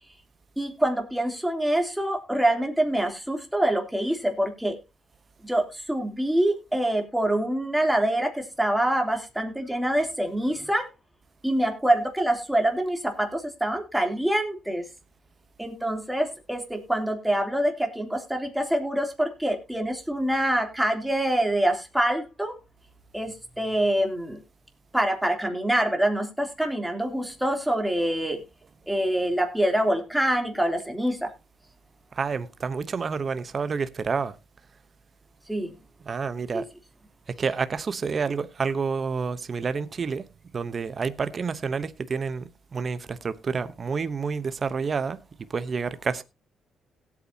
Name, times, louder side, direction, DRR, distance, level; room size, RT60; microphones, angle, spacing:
voice 1, 0.6-4.8 5.4-10.9 11.4-14.9 15.6-22.5 23.1-24.4 24.9-28.4 28.9-31.3 35.5-35.8 36.5-36.6, right 1 dB, 5° right, 3.0 m, -25 dB
voice 2, 32.1-34.4 36.0-36.7 37.3-40.3 40.5-46.2, right 5 dB, 40° right, 0.8 m, -29 dB
17.5 x 8.6 x 2.8 m
cardioid pair, 90°, 0 cm